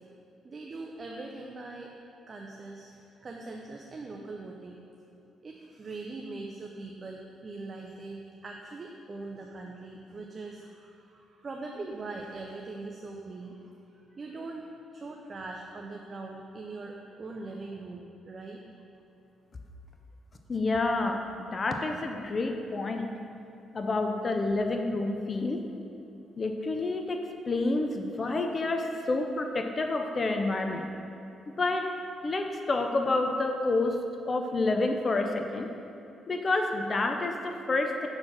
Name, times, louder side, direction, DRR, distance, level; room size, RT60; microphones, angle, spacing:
voice 1, 0.4-1.9 2.3-4.8 5.4-14.7 14.9-18.6, right 3 dB, 35° right, 0 dB, 0.6 m, -41 dB
voice 2, 20.5-23.1 23.7-25.6 26.4-30.9 31.5-31.9 32.2-34.0 34.3-35.7 36.3-38.1, left 2 dB, 35° left, 4 dB, 0.5 m, -29 dB
6.2 x 4.4 x 6.0 m, 2.8 s
cardioid pair, 90°, 0 cm